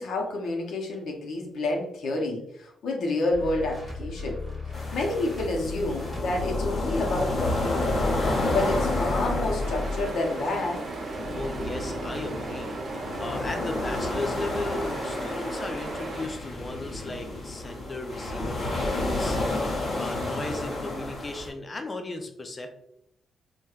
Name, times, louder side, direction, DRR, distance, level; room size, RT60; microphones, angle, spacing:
voice 1, 0.0-4.4 4.7-8.0 8.5-10.8, left 2 dB, 85° left, -1 dB, 0.6 m, -29 dB
sound 1, 3.3-13.3, left 3 dB, 5° right, 1.0 m, -36 dB
sound 2, 4.7-21.5, left 2 dB, 40° left, 1.3 m, -31 dB
sound 3, 9.6-16.3, right 2 dB, 50° right, 0.5 m, -36 dB
voice 2, 11.3-19.4 20.0-22.7, left 2 dB, 25° left, 5 dB, 0.4 m, -36 dB
4.2 x 2.2 x 2.3 m, 0.75 s
wide cardioid pair, 155°, 0 cm